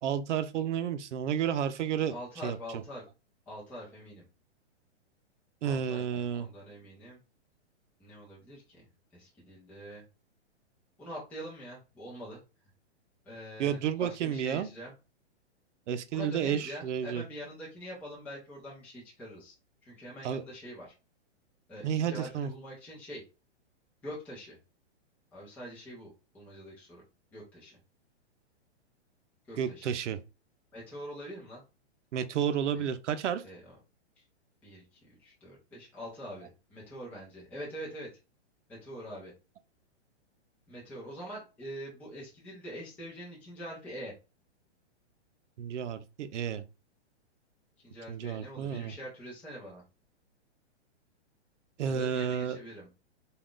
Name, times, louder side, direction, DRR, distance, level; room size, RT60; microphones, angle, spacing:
voice 1, 0.0-2.1 2.4-2.6 5.6-6.5 13.6-14.7 15.9-17.2 20.2-20.4 21.8-22.5 29.6-30.2 32.1-33.4 45.6-46.6 48.1-48.9 51.8-52.6, right 8 dB, 85° right, 0.6 m, -31 dB
voice 2, 2.1-3.0 3.5-4.3 5.6-7.2 8.0-8.9 9.1-10.0 11.0-12.4 13.2-14.9 16.1-19.5 19.8-20.9 21.7-23.2 24.0-24.6 25.3-27.0 27.3-27.8 29.5-29.9 30.7-31.6 32.7-32.9 33.4-33.7 34.2-34.3 34.6-38.1 38.7-39.3 40.7-44.1 47.8-49.8 51.8-52.9, equal, 5° left, 0.5 m, -44 dB
3.5 x 2.3 x 2.4 m
hypercardioid pair, 160°, 35 cm